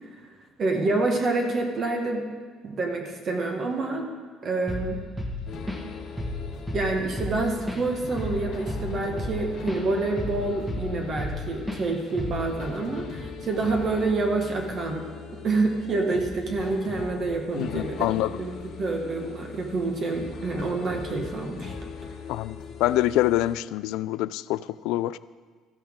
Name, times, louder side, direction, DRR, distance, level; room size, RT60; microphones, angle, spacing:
voice 1, 0.6-2.2 2.6-4.1 4.4-5.0 6.7-15.0 15.4-18.5 18.8-21.7, right 3 dB, 35° right, 2 dB, 1.4 m, -27 dB
Drum kit / Drum, 4.7-4.9 5.2-5.9 6.2-6.4 6.7-9.8 10.2-11.4 11.7-11.9 12.2-12.5, left 1 dB, 5° right, 1.5 m, -32 dB
sound 1, 5.5-23.5, left 5 dB, 55° left, 1.3 m, -40 dB
voice 2, 17.5-18.4 22.3-25.2, left 15 dB, 80° left, 16 dB, 0.3 m, -26 dB
14.0 x 12.5 x 3.7 m, 1.5 s
cardioid pair, 150°, 0 cm